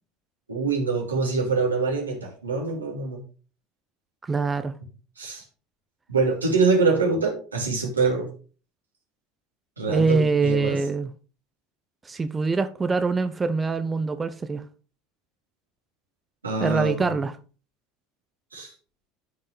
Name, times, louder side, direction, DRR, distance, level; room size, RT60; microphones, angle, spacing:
voice 1, 0.5-3.2 5.2-5.4 6.1-8.3 9.8-10.8 16.4-17.1 18.5-18.7, right 4 dB, 90° right, 2.6 m, -24 dB
voice 2, 4.2-4.7 9.9-11.1 12.0-14.6 16.6-17.4, right 4 dB, 20° right, 0.7 m, -24 dB
13.0 x 5.5 x 3.3 m
hypercardioid pair, 75°, 0 cm